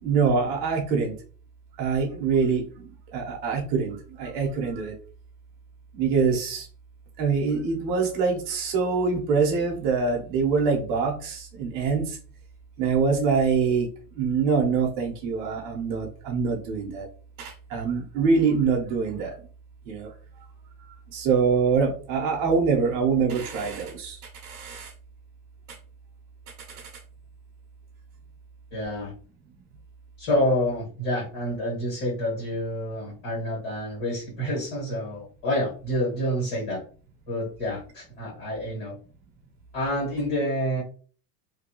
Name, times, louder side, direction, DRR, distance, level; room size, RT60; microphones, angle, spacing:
voice 1, 0.0-1.2 1.8-4.9 5.9-6.7 7.2-12.2 12.8-13.9 14.1-17.1 17.4-19.3 19.9-20.1 21.1-24.9 25.7-25.8 26.7-26.9, right 5 dB, 30° right, 1 dB, 0.6 m, -25 dB
voice 2, 28.7-29.1 30.2-36.8 37.3-38.9 39.7-40.8, left 1 dB, 45° left, -4 dB, 1.5 m, -28 dB
2.7 x 2.6 x 2.8 m, 0.40 s
supercardioid pair, 175°, 49 cm